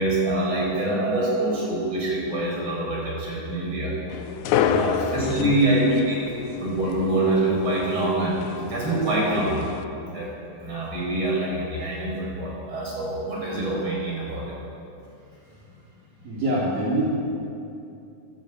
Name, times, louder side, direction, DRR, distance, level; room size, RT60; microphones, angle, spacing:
voice 1, 0.0-3.9 4.6-6.3 6.6-9.6 10.0-10.3 10.6-14.6, right 1 dB, 30° right, -3 dB, 8.0 m, -25 dB
sound 1, 4.1-9.8, left 9 dB, 80° left, 1.7 m, -30 dB
voice 2, 4.6-4.9 5.2-5.5 16.2-17.2, right 1 dB, 60° right, -7 dB, 5.2 m, -26 dB
24.5 x 16.0 x 9.3 m, 2.7 s
omnidirectional pair, 4.6 m